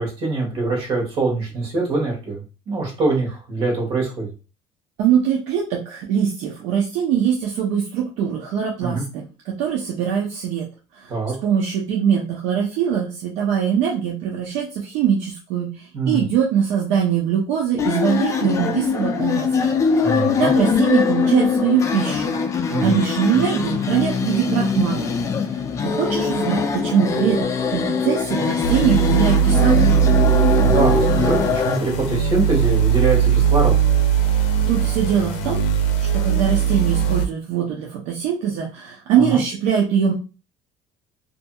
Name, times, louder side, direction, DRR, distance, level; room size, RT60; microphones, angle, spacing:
voice 1, 0.0-4.3 8.8-9.1 11.1-11.3 15.9-16.2 20.0-20.5 22.7-23.0 30.6-33.8 39.2-39.4, right 3 dB, 50° right, -1 dB, 1.3 m, -23 dB
voice 2, 5.0-10.7 11.4-15.7 16.1-19.7 20.0-22.4 22.8-25.1 25.8-29.9 34.7-35.6 36.0-40.1, right 8 dB, 80° right, -1 dB, 0.6 m, -22 dB
sound 1, 17.8-31.8, left 5 dB, 25° left, 0.3 m, -22 dB
sound 2, 28.6-37.3, right 8 dB, 85° left, 0.5 m, -19 dB
2.6 x 2.6 x 2.3 m, 0.32 s
cardioid pair, 140°, 12 cm